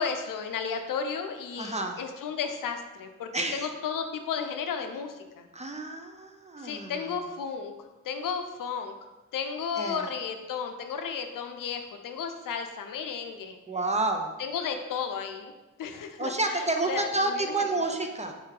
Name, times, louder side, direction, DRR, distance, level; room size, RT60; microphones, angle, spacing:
voice 1, 0.0-5.5 6.6-7.7 8.0-8.9 9.3-13.6 14.4-15.5 15.8-17.9, left 6 dB, 75° left, 6 dB, 0.5 m, -33 dB
voice 2, 1.5-2.0 3.3-3.7 5.5-7.0 9.8-10.0 13.7-14.3 16.2-18.3, right 2 dB, 20° right, 4 dB, 0.5 m, -29 dB
4.5 x 2.8 x 3.7 m, 1.1 s
cardioid pair, 60°, 33 cm